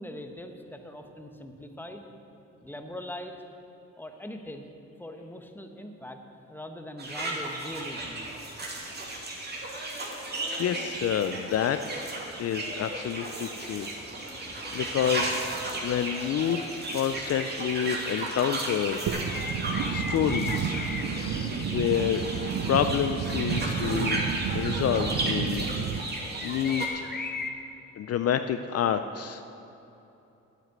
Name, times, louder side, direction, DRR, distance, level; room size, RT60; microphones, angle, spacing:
voice 1, 0.0-2.0 2.6-3.4 4.0-4.7 5.0-6.2 6.5-8.3, left 1 dB, 5° left, 5 dB, 1.2 m, -41 dB
sound 1, 7.0-26.9, right 2 dB, 35° right, 2.5 m, -34 dB
voice 2, 10.6-12.1 12.4-13.9 14.3-14.4 14.7-15.4 15.8-16.6 16.9-19.1 19.9-20.8 21.7-22.2 22.7-24.2 24.5-25.7 26.4-27.2 28.0-29.5, left 9 dB, 55° left, 9 dB, 0.5 m, -28 dB
sound 2, 10.9-25.9 26.2-27.5, left 4 dB, 30° left, 1.0 m, -40 dB
sound 3, 19.1-26.0, right 7 dB, 65° right, 0.7 m, -31 dB
9.4 x 9.3 x 8.0 m, 2.9 s
cardioid pair, 90°, 30 cm